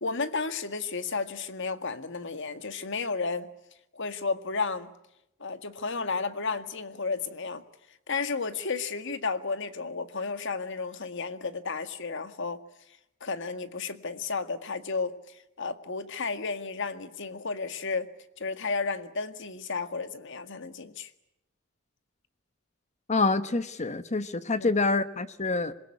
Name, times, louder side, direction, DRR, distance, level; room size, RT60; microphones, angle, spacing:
voice 1, 0.0-3.5 3.9-4.9 5.4-7.6 8.1-12.6 13.2-18.1 18.4-21.1 24.6-24.7, left 4 dB, 65° left, 1.9 m, -32 dB
voice 2, 23.1-25.7, left 3 dB, 35° left, 1.1 m, -26 dB
26.5 x 22.0 x 9.8 m
head